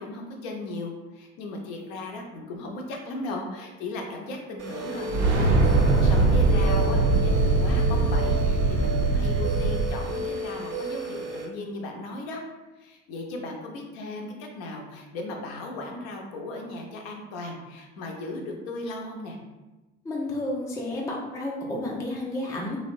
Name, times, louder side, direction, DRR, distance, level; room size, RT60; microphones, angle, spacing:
voice 1, 0.0-12.4 12.8-19.4, left 2 dB, 55° left, 2 dB, 0.6 m, -36 dB
sound 1, 4.6-11.5, right 2 dB, 35° right, 0.6 m, -33 dB
sound 2, 5.1-9.8, right 3 dB, 80° right, 0.5 m, -21 dB
voice 2, 20.0-22.8, left 1 dB, 10° left, -2 dB, 0.4 m, -31 dB
2.8 x 2.0 x 2.5 m, 1.1 s
figure-of-eight pair, 65°, 36 cm